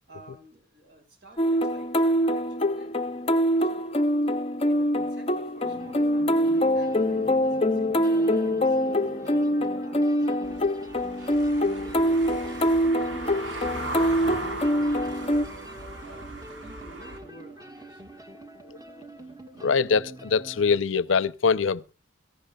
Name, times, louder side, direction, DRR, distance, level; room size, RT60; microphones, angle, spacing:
voice 1, 0.0-11.3 11.6-13.8 14.2-18.3, right 1 dB, 60° right, 5.9 m, -53 dB
sound 1, 1.4-15.5, equal, 30° left, 0.6 m, -24 dB
sound 2, 5.6-20.8, right 1 dB, 20° right, 1.5 m, -44 dB
Car passing by / Engine, 10.4-17.2, right 2 dB, 80° right, 4.2 m, -38 dB
voice 2, 19.6-21.9, left 5 dB, 90° left, 0.6 m, -24 dB
23.5 x 14.0 x 2.3 m
head